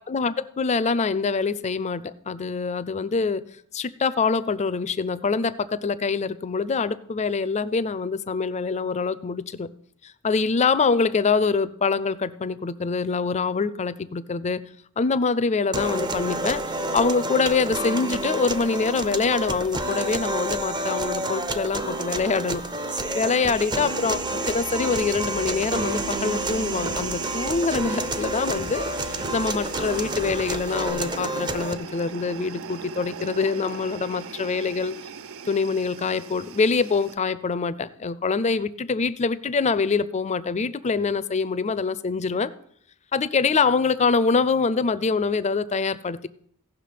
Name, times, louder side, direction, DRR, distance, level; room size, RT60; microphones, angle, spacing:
voice 1, 0.1-3.4 3.7-9.7 10.0-14.6 15.0-22.6 23.1-34.9 35.5-42.5 43.1-46.3, left 4 dB, 30° left, 15 dB, 0.5 m, -25 dB
sound 1, 15.7-31.7, right 2 dB, 20° right, 0.6 m, -29 dB
sound 2, 24.0-30.9, equal, 80° right, 4.0 m, -42 dB
sound 3, 24.9-37.2, right 5 dB, 65° right, 0.5 m, -39 dB
16.5 x 6.0 x 5.1 m, 0.66 s
head